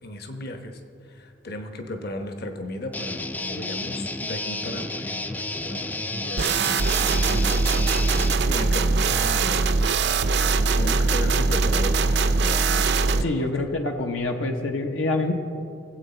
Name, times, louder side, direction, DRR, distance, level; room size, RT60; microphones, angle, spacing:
voice 1, 0.0-7.6 8.4-9.7 10.8-13.6, left 1 dB, 55° left, 5 dB, 1.1 m, -36 dB
Guitar, 2.9-8.3, left 2 dB, 10° left, 0.3 m, -31 dB
sound 1, 6.4-13.2, right 4 dB, 60° right, 0.5 m, -21 dB
voice 2, 13.2-15.3, left 2 dB, 80° left, 3 dB, 1.0 m, -26 dB
20.0 x 8.0 x 4.4 m, 2.4 s
head